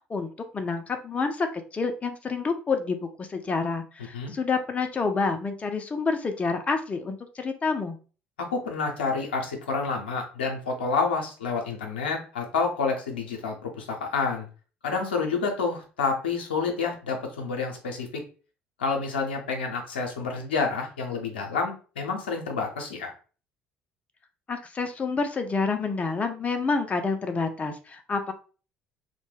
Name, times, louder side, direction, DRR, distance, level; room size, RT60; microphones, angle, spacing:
voice 1, 0.5-8.0 24.5-28.3, left 4 dB, 25° left, 6 dB, 0.4 m, -28 dB
voice 2, 8.4-14.5 14.8-18.2 18.8-23.1, left 4 dB, 80° left, 2 dB, 0.6 m, -29 dB
2.1 x 2.1 x 3.1 m, 0.37 s
figure-of-eight pair, 55°, 5 cm